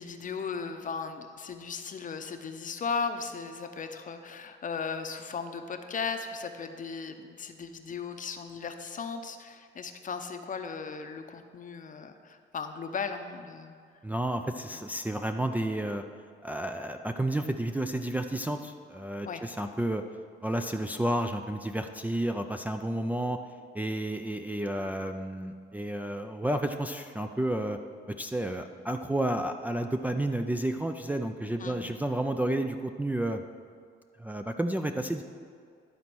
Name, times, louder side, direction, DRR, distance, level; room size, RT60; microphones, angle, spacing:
voice 1, 0.0-13.8 14.7-14.8 19.3-19.4 31.6-31.8, left 5 dB, 40° left, 7 dB, 0.7 m, -36 dB
voice 2, 14.0-16.0 16.4-20.0 20.4-23.4 23.7-27.8 28.2-33.4 34.2-35.2, right 1 dB, 10° right, 4 dB, 0.4 m, -31 dB
11.5 x 4.1 x 6.0 m, 2.2 s
cardioid pair, 90°, 20 cm